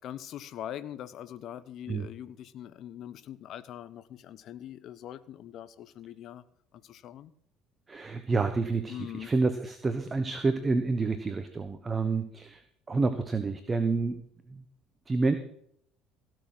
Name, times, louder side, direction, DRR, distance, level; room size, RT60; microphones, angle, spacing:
voice 1, 0.0-6.4 6.7-7.3 8.9-9.3, left 11 dB, 55° left, 15 dB, 0.9 m, -42 dB
voice 2, 7.9-12.6 12.9-14.2 14.5-14.6 15.1-15.3, right 3 dB, 25° right, 9 dB, 1.1 m, -28 dB
17.0 x 6.6 x 6.1 m, 0.68 s
figure-of-eight pair, 60°, 0 cm